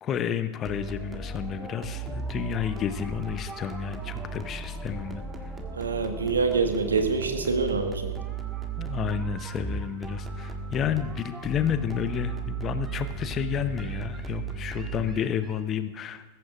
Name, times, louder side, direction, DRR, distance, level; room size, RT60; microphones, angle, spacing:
voice 1, 0.0-5.2 8.8-16.2, left 9 dB, 30° left, 11 dB, 0.9 m, -31 dB
sound 1, 0.7-15.6, right 4 dB, 15° right, 1.7 m, -36 dB
voice 2, 5.8-8.2, right 4 dB, 75° right, 6 dB, 1.6 m, -26 dB
20.5 x 15.5 x 2.5 m, 1.2 s
figure-of-eight pair, 90°, 0 cm